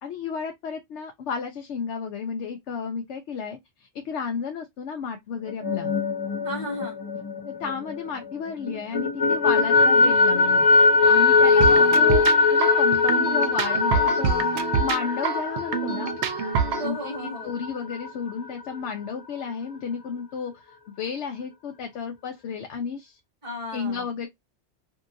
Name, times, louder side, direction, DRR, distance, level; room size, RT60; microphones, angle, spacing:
voice 1, 0.0-5.9 7.5-12.2 12.5-16.1 16.8-17.0 17.4-23.2 23.7-24.3, left 6 dB, 70° left, 0.9 m, -32 dB
sound 1, 5.5-8.3 8.7-18.1, left 3 dB, 40° left, 0.3 m, -21 dB
voice 2, 6.4-7.0 11.4-11.9 16.8-17.5 23.4-24.0, equal, 30° right, 1.0 m, -34 dB
sound 2, 11.6-16.9, right 7 dB, 70° right, 0.8 m, -27 dB
2.8 x 2.7 x 2.5 m
omnidirectional pair, 1.2 m